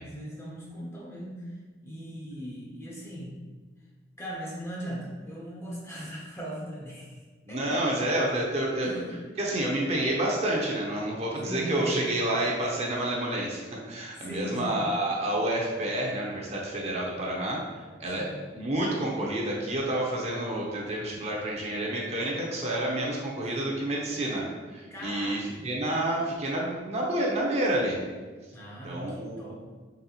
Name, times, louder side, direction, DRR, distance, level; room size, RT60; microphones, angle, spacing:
voice 1, 0.0-1.5 1.8-3.3 4.2-7.2 7.5-7.8 8.8-9.0 11.4-12.1 14.1-14.8 18.2-18.4 24.9-25.7 28.5-29.6, equal, 15° left, -4 dB, 0.6 m, -39 dB
voice 2, 7.5-8.9 9.4-28.0 28.8-29.4, right 1 dB, 35° right, -3 dB, 0.6 m, -29 dB
4.0 x 3.1 x 2.9 m, 1.4 s
head